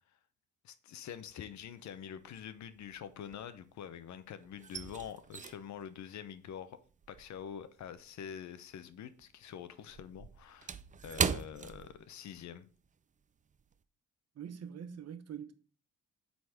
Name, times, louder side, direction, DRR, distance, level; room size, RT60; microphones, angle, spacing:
voice 1, 0.6-6.8 7.1-12.7, left 8 dB, 70° left, 0.9 m, -46 dB
sound 1, 1.2-1.7 2.0-4.0 4.3-8.9 9.2-12.5 12.8-13.0 13.5-13.8, right 6 dB, 25° right, 0.4 m, -40 dB
voice 2, 14.3-15.5, right 8 dB, 55° right, 1.0 m, -44 dB
7.8 x 4.0 x 4.9 m
cardioid pair, 90°, 30 cm